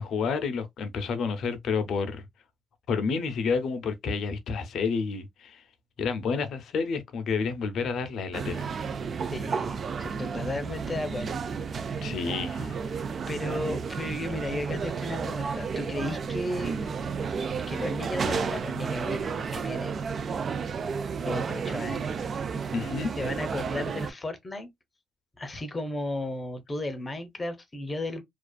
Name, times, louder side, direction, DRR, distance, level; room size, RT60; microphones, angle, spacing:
voice 1, 0.0-2.3 2.9-5.6 6.0-8.7 12.0-13.0 22.7-23.1, left 5 dB, 70° left, 0.6 m, -30 dB
sound 1, 8.3-24.1, right 5 dB, 50° right, 0.3 m, -32 dB
voice 2, 9.3-11.4 11.7-12.1 13.3-16.8 17.7-20.0 21.3-22.2 22.5-22.6 23.2-24.7 25.4-28.2, left 1 dB, 25° left, 0.6 m, -34 dB
2.5 x 2.3 x 2.2 m
cardioid pair, 90°, 0 cm